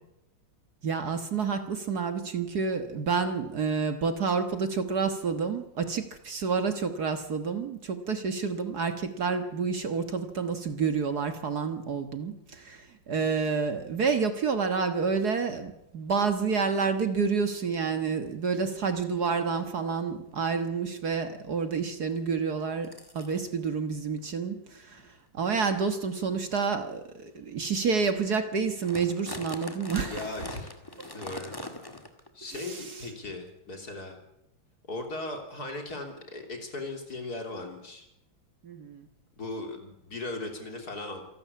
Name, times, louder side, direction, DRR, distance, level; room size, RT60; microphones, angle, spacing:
voice 1, 0.8-30.3 32.5-33.1 38.6-39.1, right 5 dB, 50° right, 8 dB, 1.8 m, -29 dB
sound 1, 19.6-19.7 20.3-20.4 20.8-21.0 22.1-22.2 22.8-23.4 24.2-24.3 24.9-25.1 25.7-25.8 26.5-26.7 27.2-27.4 27.8-27.9 28.0-28.3 28.6-32.3 32.5-32.7 33.5-33.6, left 1 dB, 10° left, 1.7 m, -42 dB
voice 2, 30.0-30.7 31.1-31.5 32.3-34.2 34.9-38.1 39.4-41.2, left 2 dB, 45° left, 3 dB, 3.8 m, -38 dB
27.0 x 12.5 x 8.5 m, 0.86 s
omnidirectional pair, 2.2 m